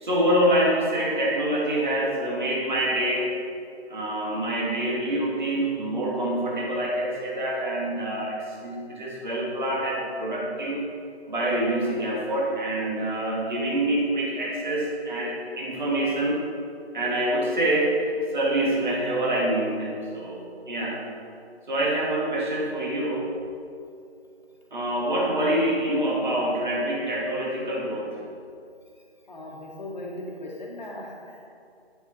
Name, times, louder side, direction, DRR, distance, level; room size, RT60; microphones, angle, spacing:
voice 1, 0.0-3.3 3.9-10.8 11.3-16.4 16.9-18.0 18.3-21.1 21.7-23.3 24.7-28.2, right 1 dB, 45° right, -3 dB, 1.8 m, -26 dB
voice 2, 29.3-31.5, left 1 dB, 40° left, -2 dB, 1.5 m, -38 dB
9.1 x 6.8 x 4.1 m, 2.5 s
figure-of-eight pair, 160°, 33 cm